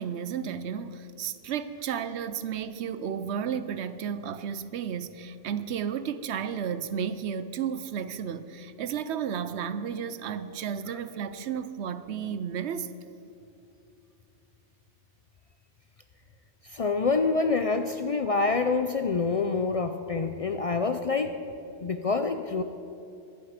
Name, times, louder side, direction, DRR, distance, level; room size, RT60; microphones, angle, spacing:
voice 1, 0.0-12.9, right 8 dB, 70° right, 13 dB, 0.9 m, -33 dB
voice 2, 16.7-21.3 21.8-22.6, left 4 dB, 55° left, 7 dB, 0.4 m, -26 dB
23.0 x 8.2 x 5.1 m, 2.7 s
omnidirectional pair, 1.2 m